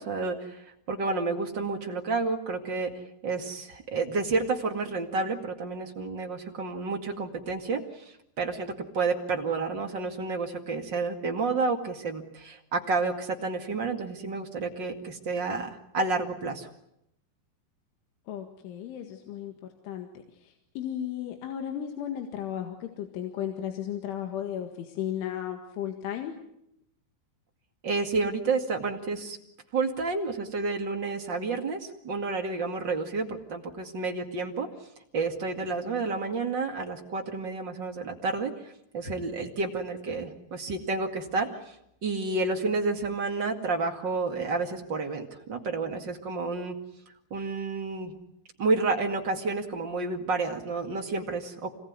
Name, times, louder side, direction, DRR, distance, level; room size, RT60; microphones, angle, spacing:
voice 1, 0.0-2.9 3.2-16.7 27.8-29.4 29.7-34.7 35.1-41.7 42.0-46.7 47.3-48.1 48.6-51.7, right 3 dB, 40° right, 2 dB, 1.6 m, -30 dB
voice 2, 18.3-19.5 19.8-20.1 20.4-26.3, left 10 dB, 80° left, 4 dB, 4.2 m, -35 dB
27.0 x 20.5 x 9.6 m, 0.79 s
omnidirectional pair, 5.5 m